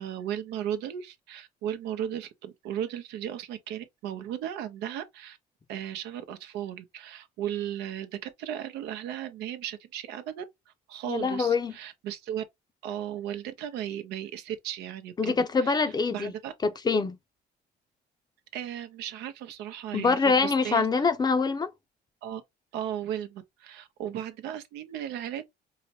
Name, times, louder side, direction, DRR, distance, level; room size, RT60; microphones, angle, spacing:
voice 1, 0.0-5.4 5.7-10.4 10.9-12.4 12.8-15.3 15.6-16.5 18.5-21.1 22.2-22.4 22.7-25.5, right 10 dB, 85° right, 0.7 m, -36 dB
voice 2, 11.1-11.7 15.2-16.3 16.6-17.2 19.9-21.7, left 4 dB, 25° left, 0.5 m, -24 dB
4.8 x 2.1 x 2.8 m
cardioid pair, 110°, 17 cm